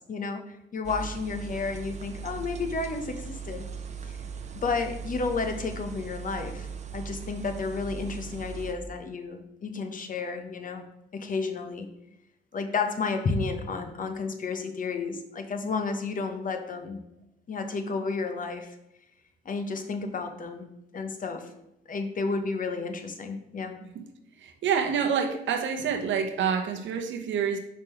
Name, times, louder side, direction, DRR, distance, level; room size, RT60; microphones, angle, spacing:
voice 1, 0.1-3.6 4.1-4.2 4.5-6.7 6.9-10.9 11.1-11.9 12.5-17.0 17.5-18.7 19.4-20.7 20.9-21.5 21.9-23.8, left 4 dB, 40° left, 6 dB, 1.0 m, -32 dB
sound 1, 0.8-8.7, right 6 dB, 35° right, 0.7 m, -39 dB
voice 2, 24.4-27.6, right 7 dB, 70° right, 5 dB, 1.0 m, -27 dB
5.1 x 3.7 x 5.8 m, 0.87 s
cardioid pair, 90°, 20 cm